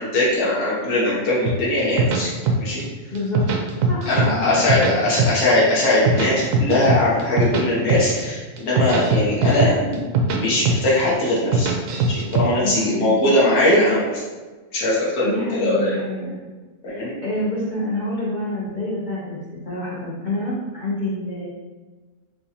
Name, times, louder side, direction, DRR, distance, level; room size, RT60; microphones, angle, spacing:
voice 1, 0.0-2.3 2.6-2.8 4.1-11.7 12.1-14.2 14.7-16.0 16.8-17.1, left 1 dB, 70° left, -7 dB, 1.5 m, -20 dB
sound 1, 1.5-2.8 3.2-4.3 4.5-5.5 5.9-7.6 7.9-8.2 8.6-10.4 10.7-11.0 11.4-12.4, right 3 dB, 70° right, 0.9 m, -20 dB
voice 2, 3.1-3.5 3.9-4.4 12.6-13.3 15.2-16.4 16.8-19.4 19.6-21.5, left 1 dB, 50° left, -6 dB, 0.6 m, -27 dB
4.6 x 2.9 x 2.7 m, 1.3 s
omnidirectional pair, 1.6 m